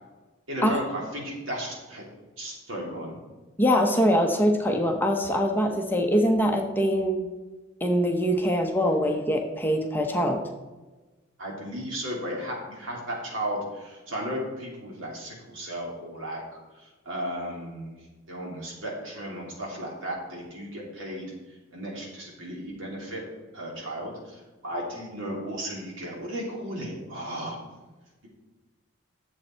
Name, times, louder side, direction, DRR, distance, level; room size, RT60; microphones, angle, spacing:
voice 1, 0.5-2.0 2.4-3.2 11.4-16.4 16.7-23.2 23.5-27.6, equal, 70° right, -3 dB, 3.2 m, -35 dB
voice 2, 3.6-7.3 7.8-10.4, equal, 10° left, 2 dB, 0.8 m, -23 dB
10.5 x 7.4 x 4.5 m, 1.2 s
head